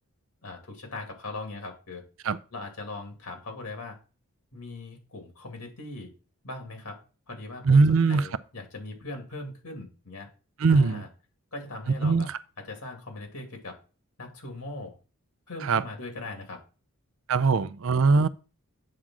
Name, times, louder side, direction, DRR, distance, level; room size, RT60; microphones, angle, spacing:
voice 1, 0.4-2.0 2.5-4.0 4.5-6.1 6.4-7.0 7.3-10.3 10.7-11.1 11.5-12.3 12.7-13.7 14.2-15.0 15.5-16.6, left 2 dB, 90° left, 2.4 m, -40 dB
voice 2, 7.6-8.3 10.6-11.0 12.0-12.4 15.6-15.8 17.3-18.3, right 4 dB, 65° right, 0.5 m, -21 dB
8.6 x 3.8 x 6.1 m
head